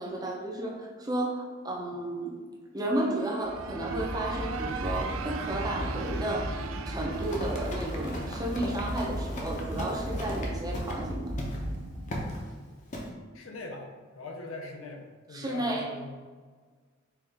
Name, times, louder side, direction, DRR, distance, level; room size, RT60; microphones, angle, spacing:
voice 1, 0.0-2.4 2.7-11.3 15.3-15.9, right 1 dB, 20° right, -2 dB, 0.6 m, -33 dB
sound 1, 3.0-9.8, right 6 dB, 80° right, 0.3 m, -40 dB
sound 2, 3.4-12.5, equal, 50° right, 0.8 m, -36 dB
Run, 7.1-11.0 11.4-11.6 12.1-12.4 12.9-13.1, equal, 40° left, 0.6 m, -38 dB
voice 2, 13.3-13.9 14.1-16.1, left 2 dB, 90° left, 2 dB, 0.6 m, -41 dB
4.6 x 2.4 x 3.4 m, 1.5 s
head